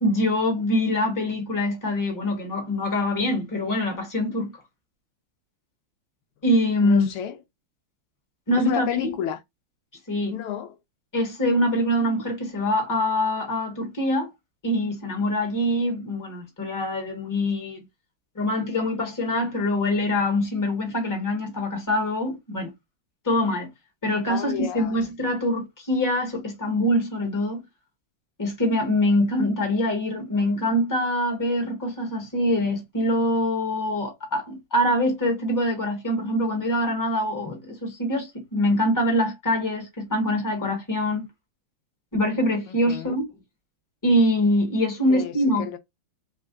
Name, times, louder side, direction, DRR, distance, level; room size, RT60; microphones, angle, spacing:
voice 1, 0.0-4.5 6.4-7.1 8.5-9.1 10.1-10.4 11.1-14.3 14.6-17.8 18.3-22.7 23.2-23.7 24.0-27.6 28.4-41.3 42.1-43.2 44.0-45.7, left 1 dB, 10° left, 1.2 m, -24 dB
voice 2, 6.8-7.4 8.6-9.4 10.3-10.7 24.3-25.1 42.7-43.1 45.1-45.8, left 9 dB, 85° left, 1.5 m, -31 dB
3.7 x 3.3 x 2.5 m
omnidirectional pair, 2.4 m